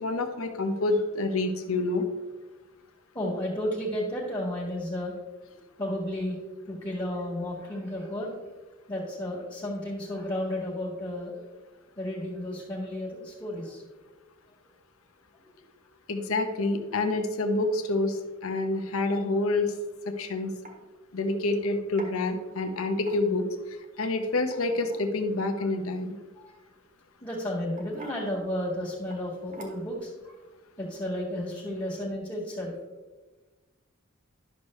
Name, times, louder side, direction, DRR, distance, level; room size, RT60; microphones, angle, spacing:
voice 1, 0.0-2.1 16.1-19.7 20.1-20.5 21.1-23.4 24.0-26.2, left 2 dB, 75° left, 6 dB, 0.9 m, -27 dB
voice 2, 3.1-5.1 5.8-6.3 6.7-8.3 8.9-11.4 12.0-13.8 26.4-26.5 27.2-30.1 30.8-32.7, left 1 dB, 20° left, -3 dB, 1.7 m, -32 dB
sound 1, 20.0-20.1 20.6-20.8 22.0-22.2 23.0-23.5 24.4-25.1 26.7-27.0 27.7-28.2 29.1-29.2 29.5-30.0, right 2 dB, 35° right, 1.3 m, -45 dB
11.0 x 6.4 x 3.1 m, 1.2 s
head